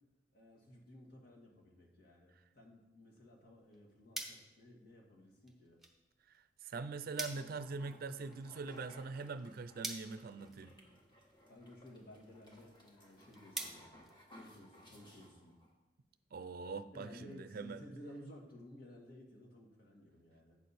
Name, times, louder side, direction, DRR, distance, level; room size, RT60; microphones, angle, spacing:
voice 1, 0.3-5.8 11.5-13.9 14.4-15.6 16.9-20.6, left 1 dB, 60° left, -1 dB, 1.8 m, -56 dB
sound 1, 3.4-14.9, right 2 dB, ahead, 0.9 m, -50 dB
voice 2, 6.3-10.7 16.3-17.8, right 4 dB, 55° right, 12 dB, 0.4 m, -43 dB
sound 2, 7.1-15.7, equal, 25° left, 1.5 m, -61 dB
8.4 x 6.5 x 4.2 m, 1.0 s
head